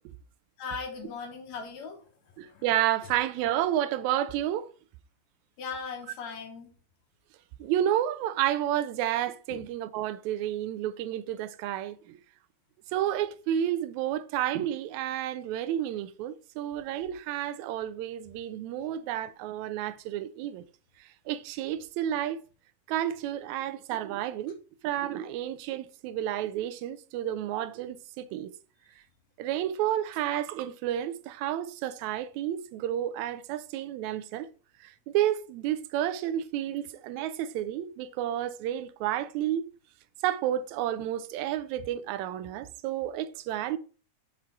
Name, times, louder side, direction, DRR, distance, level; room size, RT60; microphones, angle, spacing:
voice 1, 0.6-2.0 2.5-2.6 5.6-6.7 9.5-9.6, left 5 dB, 70° left, 2.3 m, -38 dB
voice 2, 2.4-4.7 7.6-12.2 12.9-20.6 21.0-22.4 22.9-24.6 24.8-28.5 29.4-34.5 34.8-39.6 40.2-43.8, right 11 dB, 80° right, 1.8 m, -31 dB
5.8 x 3.8 x 4.5 m
omnidirectional pair, 3.4 m